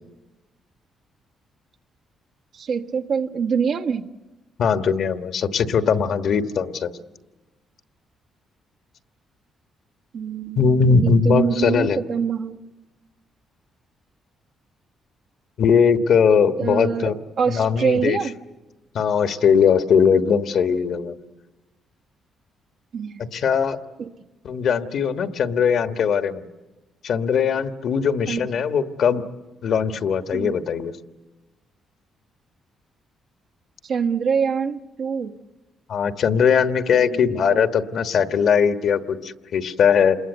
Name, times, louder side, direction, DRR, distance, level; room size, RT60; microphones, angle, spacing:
voice 1, 2.5-4.1 10.1-12.6 16.6-18.3 22.9-23.2 24.0-24.1 28.3-28.5 30.3-30.5 33.8-35.3 37.0-37.6, right 6 dB, 60° right, 4 dB, 1.2 m, -25 dB
voice 2, 4.6-6.9 10.6-12.0 15.6-17.2 17.5-18.2 18.9-21.2 23.2-23.8 24.4-26.5 27.0-29.2 29.6-30.9 35.9-40.2, left 6 dB, 65° left, 8 dB, 1.4 m, -20 dB
27.5 x 21.5 x 8.0 m, 1.1 s
cardioid pair, 90°, 0 cm